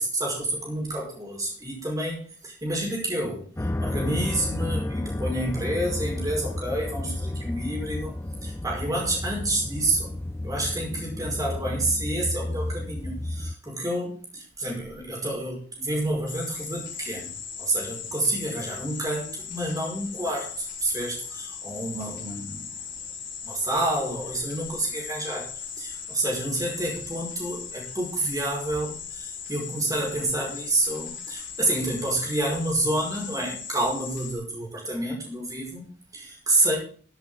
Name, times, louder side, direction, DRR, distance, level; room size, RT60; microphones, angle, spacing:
voice 1, 0.0-10.1 10.4-17.3 17.6-22.8 23.4-36.8, right 1 dB, 20° right, -1 dB, 5.1 m, -29 dB
sound 1, 3.6-13.5, left 1 dB, 15° left, 0.4 m, -32 dB
sound 2, 16.3-34.3, left 6 dB, 70° left, 4.1 m, -38 dB
15.0 x 8.0 x 3.8 m, 0.43 s
head